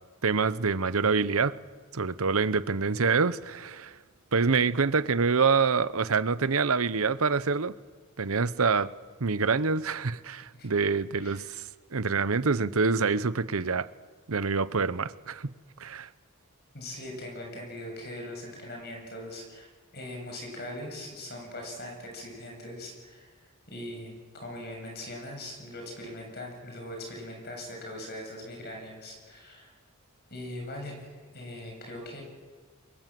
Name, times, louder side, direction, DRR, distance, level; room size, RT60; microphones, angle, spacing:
voice 1, 0.2-1.5 1.9-3.9 4.3-7.7 8.2-8.9 9.2-11.6 11.9-13.9 14.3-15.5 15.8-16.1, right 4 dB, 80° right, 0.9 m, -26 dB
voice 2, 16.7-19.7 19.9-29.7 30.3-31.0 31.3-32.2, left 1 dB, 45° left, 7.8 m, -41 dB
28.0 x 23.0 x 7.7 m
head